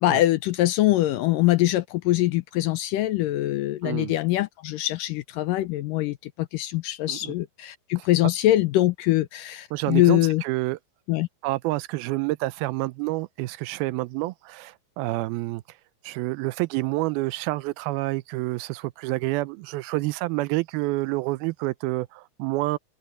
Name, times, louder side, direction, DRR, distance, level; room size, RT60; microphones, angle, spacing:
voice 1, 0.0-10.4 11.1-11.3, left 16 dB, 80° left, 2.1 m, -23 dB
voice 2, 3.8-4.1 7.1-7.3 8.0-8.1 9.7-10.8 11.4-15.8 16.0-22.8, right 20 dB, 85° right, 2.5 m, -28 dB
omnidirectional pair, 4.3 m